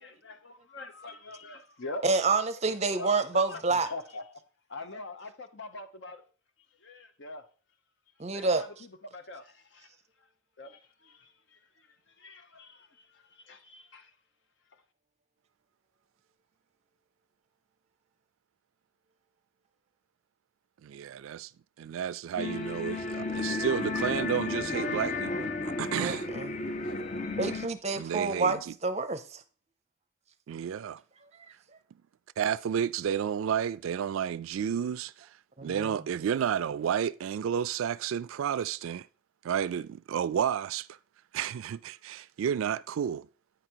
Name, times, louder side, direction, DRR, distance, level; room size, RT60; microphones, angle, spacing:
voice 1, 0.0-2.0 3.0-4.2 4.7-6.2 6.8-7.4 8.3-8.7 9.0-9.9 10.6-11.3 12.2-12.9 13.5-14.1, left 2 dB, 60° left, 0.9 m, -43 dB
voice 2, 2.0-3.9 8.2-8.9 26.0-26.5 27.4-29.4 35.6-35.9, right 3 dB, 30° right, 0.6 m, -28 dB
voice 3, 20.8-21.5 21.8-26.3 27.9-28.7 30.5-31.0 32.4-35.3 35.6-39.1 39.4-41.0 41.3-43.3, right 8 dB, 80° right, 0.3 m, -31 dB
sound 1, 22.4-27.7, left 3 dB, 35° left, 0.6 m, -33 dB
9.0 x 5.0 x 4.5 m
head